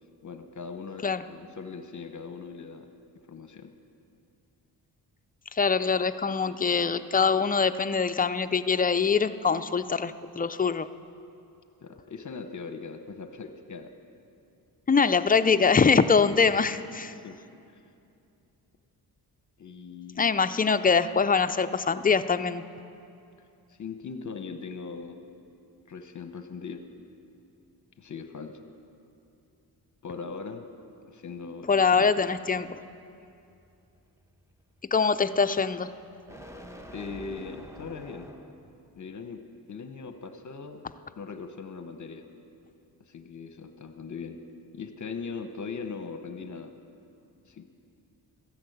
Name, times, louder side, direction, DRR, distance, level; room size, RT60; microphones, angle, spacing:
voice 1, 0.2-2.9 3.3-3.7 11.8-13.9 16.0-16.1 17.2-17.4 19.6-20.5 23.7-25.2 25.9-26.8 28.0-28.6 30.0-30.6 31.1-32.1 36.9-38.3 39.0-39.4 39.7-40.9 41.2-42.2 43.1-44.4 44.7-46.7 47.5-47.7, left 5 dB, 45° left, 8 dB, 0.9 m, -40 dB
voice 2, 5.5-10.9 14.9-17.2 20.2-22.6 31.7-32.8 34.9-35.9, left 5 dB, 20° left, 11 dB, 0.4 m, -23 dB
sound 1, 31.9-38.7, equal, 5° right, 1.1 m, -49 dB
13.5 x 10.5 x 8.0 m, 2.6 s
cardioid pair, 90°, 41 cm